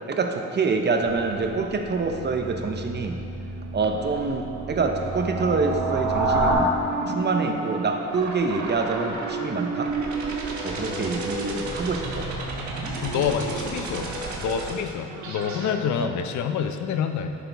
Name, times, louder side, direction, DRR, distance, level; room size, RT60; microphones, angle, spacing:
voice 1, 0.1-3.2 3.7-6.7 7.1-9.9 10.6-12.3 16.0-16.1, right 4 dB, 35° right, 4 dB, 0.7 m, -26 dB
sound 1, 1.0-6.5, right 3 dB, 55° right, 2.0 m, -29 dB
sound 2, 6.3-15.7, right 3 dB, 70° right, 1.4 m, -31 dB
voice 2, 10.7-11.1 13.0-14.1 14.4-17.4, left 7 dB, 70° left, 7 dB, 0.6 m, -27 dB
11.0 x 6.0 x 3.4 m, 2.6 s
cardioid pair, 90°, 30 cm